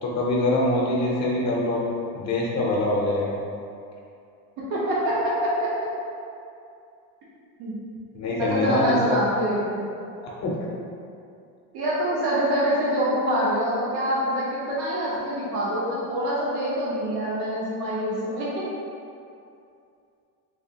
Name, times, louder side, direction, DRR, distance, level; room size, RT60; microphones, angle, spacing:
voice 1, 0.0-1.9 2.1-3.4 8.1-9.2 10.2-10.5, left 1 dB, 35° left, -4 dB, 0.6 m, -24 dB
voice 2, 4.7-5.5 7.6-7.7 8.4-9.8 11.7-18.6, equal, 55° right, -7 dB, 0.9 m, -25 dB
3.3 x 3.2 x 2.8 m, 2.5 s
supercardioid pair, 120°, 46 cm